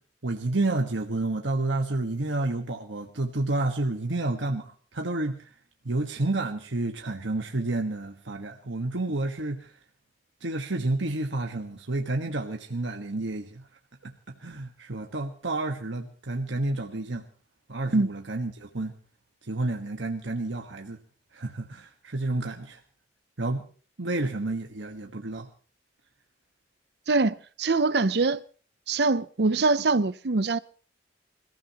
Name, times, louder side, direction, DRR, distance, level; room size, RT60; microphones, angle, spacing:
voice 1, 0.2-5.5 5.8-9.7 10.4-13.6 14.0-14.1 14.4-17.2 17.7-18.9 19.4-21.0 21.3-22.8 23.4-23.7 24.0-25.5, right 2 dB, 80° right, 1.5 m, -30 dB
voice 2, 27.1-28.4 28.9-30.6, right 3 dB, 60° right, 0.7 m, -23 dB
27.0 x 15.0 x 3.0 m
head